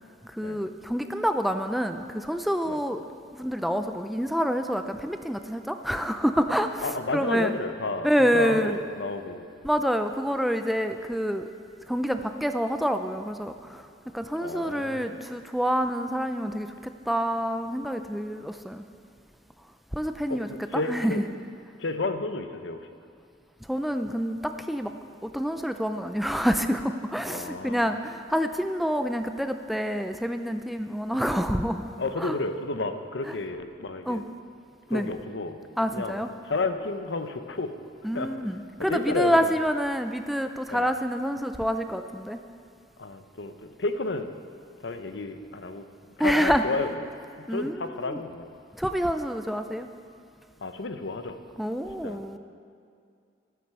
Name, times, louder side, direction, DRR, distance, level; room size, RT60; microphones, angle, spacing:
voice 1, 0.4-3.0 3.4-7.5 8.0-8.7 9.6-11.4 11.9-13.8 14.1-18.8 19.9-21.2 23.7-24.9 25.2-31.9 32.2-32.4 34.1-34.2 34.9-35.1 35.8-36.3 38.0-42.4 46.2-46.6 47.5-47.8 48.1-48.2 48.8-49.9 51.6-52.4, equal, ahead, 7 dB, 0.4 m, -27 dB
voice 2, 6.8-9.5 14.4-15.2 20.3-21.2 21.8-22.9 27.3-27.9 32.0-34.2 34.9-35.6 35.9-37.7 38.1-38.3 38.8-39.5 40.7-40.8 43.0-44.3 44.8-45.9 46.2-46.9 47.5-48.5 50.6-51.4 52.0-52.2, left 3 dB, 75° left, 8 dB, 0.8 m, -31 dB
13.0 x 9.5 x 6.8 m, 2.4 s
head